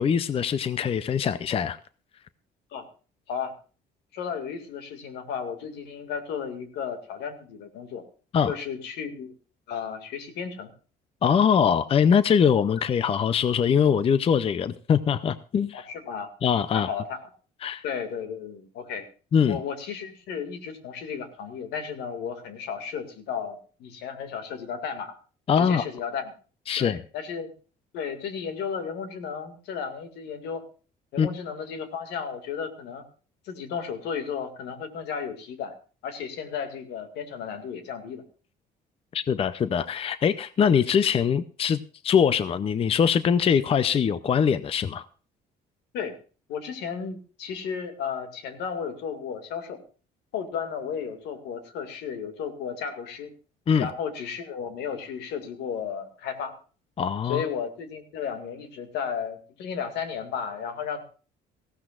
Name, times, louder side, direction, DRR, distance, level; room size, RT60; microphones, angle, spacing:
voice 1, 0.0-1.8 8.3-8.5 11.2-15.9 16.4-16.9 17.6-17.8 19.3-19.6 25.5-25.8 26.7-27.0 31.2-31.3 39.1-45.1 53.7-53.9 57.0-57.4, left 7 dB, 35° left, 14 dB, 0.5 m, -22 dB
voice 2, 4.1-8.0 8.5-9.3 9.7-10.7 15.7-16.3 16.7-17.2 17.8-19.1 19.5-25.2 25.6-26.3 26.8-27.5 27.9-30.6 31.1-33.0 33.4-35.7 36.0-38.2 45.9-46.1 46.5-49.8 50.3-53.3 53.8-56.5 57.2-61.0, left 7 dB, 80° left, 7 dB, 2.2 m, -34 dB
18.5 x 15.5 x 2.5 m, 0.37 s
cardioid pair, 110°, 17 cm